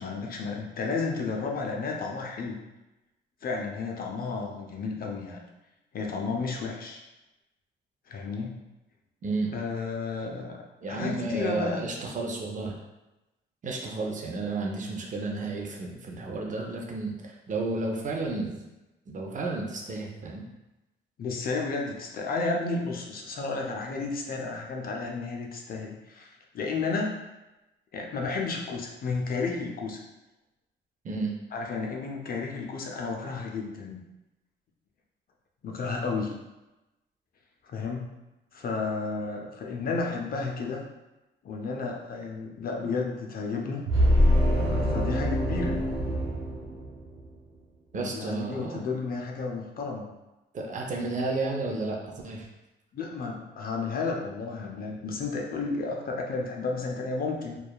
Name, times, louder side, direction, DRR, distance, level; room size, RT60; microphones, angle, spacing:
voice 1, 0.0-2.6 3.4-5.4 5.9-7.0 8.1-8.6 9.5-10.6 10.9-11.8 21.2-27.2 27.9-30.0 31.5-34.0 35.6-36.3 37.6-38.1 38.5-40.8 41.4-43.9 44.6-45.8 47.9-50.0 52.9-57.6, left 4 dB, 50° left, 1 dB, 0.5 m, -32 dB
voice 2, 9.2-9.6 10.8-12.8 13.6-18.6 19.1-20.4 31.0-31.3 47.9-48.8 50.5-52.5, right 3 dB, 40° right, 0 dB, 0.5 m, -32 dB
sound 1, 43.9-47.3, equal, 80° right, 1.0 m, -24 dB
2.7 x 2.2 x 2.2 m, 1.0 s
cardioid pair, 90°, 20 cm